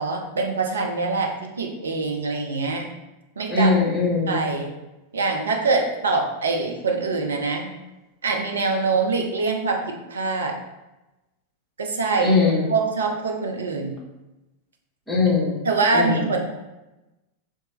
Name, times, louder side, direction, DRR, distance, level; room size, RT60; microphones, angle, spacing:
voice 1, 0.0-1.3 1.6-2.8 3.4-3.7 4.3-4.7 5.1-7.7 8.2-10.5 11.8-12.3 12.7-14.0 15.7-16.5, right 3 dB, 70° right, 2 dB, 0.6 m, -24 dB
voice 2, 3.5-4.4 12.2-12.7 15.1-15.6 15.9-16.4, left 3 dB, 5° left, -6 dB, 1.1 m, -21 dB
3.1 x 2.8 x 3.5 m, 1.0 s
figure-of-eight pair, 90°, 0 cm